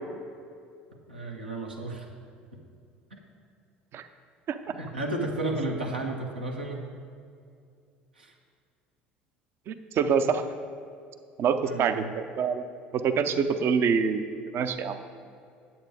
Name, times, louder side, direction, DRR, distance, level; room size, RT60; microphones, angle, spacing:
voice 1, 1.1-2.1 3.1-3.2 4.7-6.9 8.2-8.3 11.6-12.1, right 2 dB, 90° right, 0 dB, 1.1 m, -33 dB
voice 2, 9.7-10.4 11.4-12.6 12.9-15.0, right 6 dB, 50° right, 10 dB, 0.6 m, -26 dB
9.0 x 8.1 x 4.9 m, 2.3 s
figure-of-eight pair, 65°, 5 cm